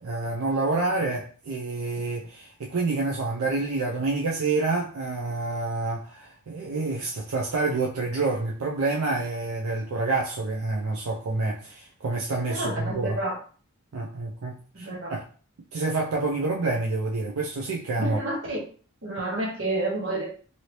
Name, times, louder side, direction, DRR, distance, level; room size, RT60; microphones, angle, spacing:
voice 1, 0.0-13.2 13.9-15.2 15.7-18.2, right 3 dB, 80° right, 0.5 m, -28 dB
voice 2, 12.5-13.3 14.8-15.1 18.0-18.6 19.0-20.3, right 2 dB, 60° right, 1.0 m, -29 dB
2.8 x 2.7 x 3.1 m
head